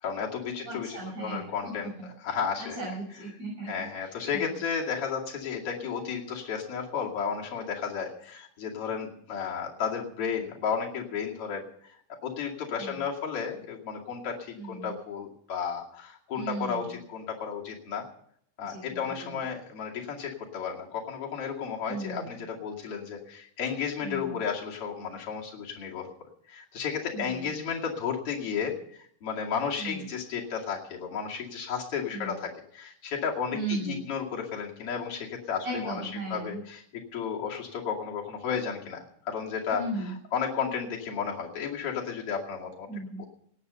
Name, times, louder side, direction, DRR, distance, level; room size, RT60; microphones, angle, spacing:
voice 1, 0.0-2.8 3.6-12.0 12.2-18.1 18.6-26.1 26.5-42.9 43.2-43.3, left 6 dB, 45° left, -2 dB, 3.2 m, -33 dB
voice 2, 0.6-1.7 2.0-2.1 2.8-4.5 12.8-13.0 14.6-14.9 16.3-17.0 18.7-19.4 21.9-22.4 24.0-24.4 27.1-27.5 29.8-30.0 32.1-32.3 33.5-34.0 35.6-36.6 39.7-40.1 42.9-43.2, right 2 dB, 50° right, -7 dB, 8.9 m, -37 dB
18.5 x 9.0 x 6.8 m, 0.67 s
omnidirectional pair, 4.0 m